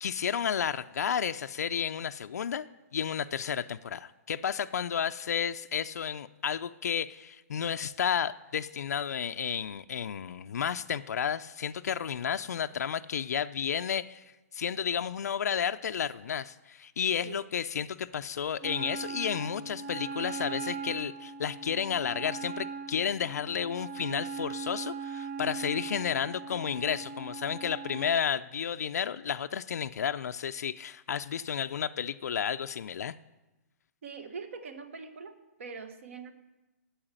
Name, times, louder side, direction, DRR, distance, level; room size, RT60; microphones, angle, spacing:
voice 1, 0.0-2.7 2.9-14.2 14.5-33.2, left 8 dB, 85° left, 10 dB, 0.4 m, -32 dB
Wind instrument woodwind instrument, 18.6-28.2, right 5 dB, 15° right, 0.3 m, -39 dB
voice 2, 34.0-35.3 35.6-36.3, right 5 dB, 55° right, 9 dB, 1.2 m, -42 dB
8.9 x 7.1 x 8.8 m, 1.1 s
hypercardioid pair, 180°, 8 cm